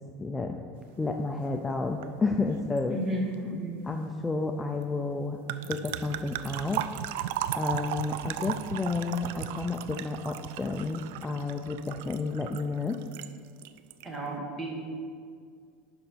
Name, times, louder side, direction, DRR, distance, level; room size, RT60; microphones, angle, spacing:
voice 1, 0.2-0.6 1.0-3.0 3.9-5.4 5.7-6.8 7.6-13.0, left 3 dB, 10° left, 3 dB, 0.4 m, -31 dB
sound 1, 2.0-2.2 2.4-2.8 5.5-13.3 13.6-14.1, right 11 dB, 75° right, 0.3 m, -36 dB
voice 2, 2.9-3.8 14.0-14.8, right 1 dB, 20° right, -1 dB, 1.6 m, -32 dB
10.5 x 5.5 x 4.4 m, 2.1 s
supercardioid pair, 160°, 0 cm